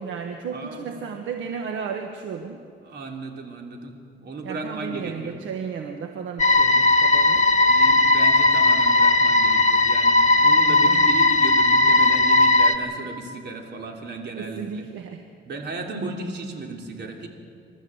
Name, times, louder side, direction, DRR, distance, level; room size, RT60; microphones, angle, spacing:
voice 1, 0.0-2.6 4.4-7.5 10.8-11.1 14.3-15.2, right 6 dB, 75° right, 5 dB, 1.4 m, -34 dB
voice 2, 0.5-1.0 2.8-5.3 7.4-14.9 15.5-17.3, right 3 dB, 60° right, 2 dB, 3.4 m, -35 dB
sound 1, 6.4-12.8, left 2 dB, 35° left, 1.6 m, -17 dB
28.0 x 13.0 x 7.9 m, 2.2 s
cardioid pair, 90°, 20 cm